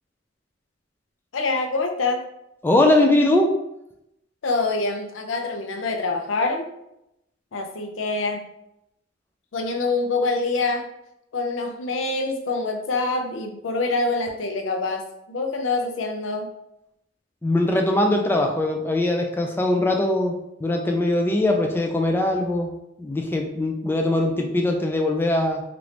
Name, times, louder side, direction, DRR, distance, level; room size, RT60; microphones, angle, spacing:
voice 1, 1.3-2.2 4.4-6.7 7.5-8.4 9.5-10.9 11.3-16.5, left 3 dB, 85° left, 4 dB, 0.5 m, -25 dB
voice 2, 2.6-3.5 17.4-22.7 23.0-25.6, left 1 dB, 10° left, 2 dB, 0.3 m, -21 dB
3.1 x 2.5 x 3.2 m, 0.83 s
head